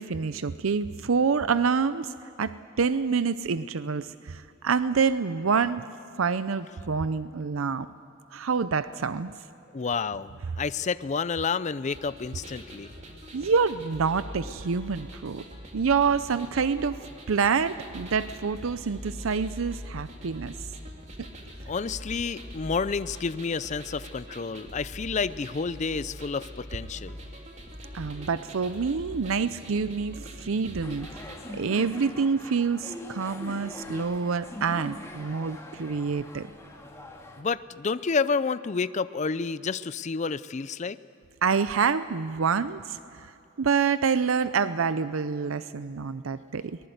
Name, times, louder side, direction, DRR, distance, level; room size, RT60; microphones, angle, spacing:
voice 1, 0.0-2.1 2.4-5.8 6.2-7.9 8.3-9.3 13.3-15.4 15.7-20.6 27.9-31.2 31.5-36.5 41.4-43.3 43.6-46.8, right 5 dB, 80° right, 13 dB, 0.6 m, -27 dB
voice 2, 9.7-12.9 21.7-27.2 37.4-41.0, left 5 dB, 35° left, 15 dB, 0.5 m, -30 dB
sound 1, 11.9-31.4, equal, 35° right, 2.8 m, -43 dB
sound 2, 30.8-37.4, left 1 dB, 15° left, 2.2 m, -42 dB
23.5 x 19.5 x 8.0 m, 2.9 s
head